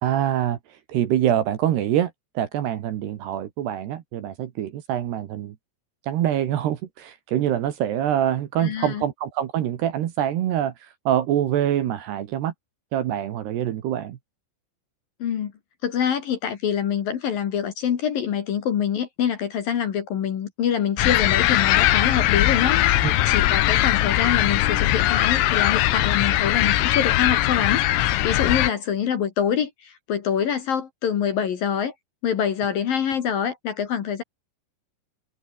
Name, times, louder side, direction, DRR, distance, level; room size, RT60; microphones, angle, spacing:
voice 1, 0.0-0.6 0.9-5.5 6.1-10.7 11.1-12.5 12.9-14.2 23.0-23.1, right 11 dB, 65° right, 3.2 m, -25 dB
voice 2, 8.6-9.0 15.2-15.5 15.8-31.9 32.2-34.2, left 8 dB, 55° left, 3.1 m, -25 dB
sound 1, 21.0-28.7, left 15 dB, 85° left, 4.0 m, -20 dB
omnidirectional pair, 5.8 m